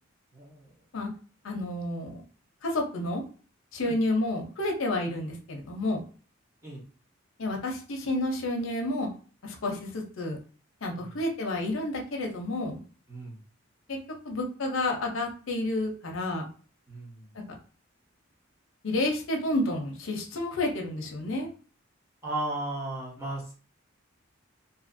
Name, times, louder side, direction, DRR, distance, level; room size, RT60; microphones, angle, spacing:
voice 1, 0.3-0.7 3.8-3.9 6.6-6.8 11.0-11.1 13.1-13.4 16.9-17.3 22.2-23.5, right 2 dB, 15° right, -5 dB, 0.9 m, -35 dB
voice 2, 1.4-2.2 2.6-3.2 3.7-6.0 7.4-9.1 9.4-10.4 10.8-12.8 13.9-14.0 14.2-16.5 18.8-21.5, left 1 dB, 75° left, 2 dB, 0.6 m, -30 dB
2.7 x 2.5 x 2.5 m, 0.38 s
head